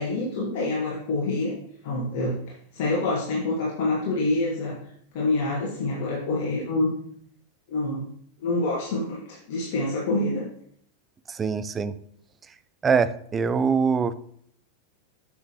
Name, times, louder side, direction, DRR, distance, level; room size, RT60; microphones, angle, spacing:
voice 1, 0.0-1.6 1.8-2.4 2.7-4.8 5.1-6.9 7.7-8.0 8.4-10.5, left 2 dB, 50° left, -3 dB, 1.6 m, -26 dB
voice 2, 11.3-11.9 12.8-14.1, right 5 dB, 20° right, 13 dB, 0.4 m, -23 dB
8.0 x 6.2 x 3.0 m, 0.65 s
figure-of-eight pair, 90°, 0 cm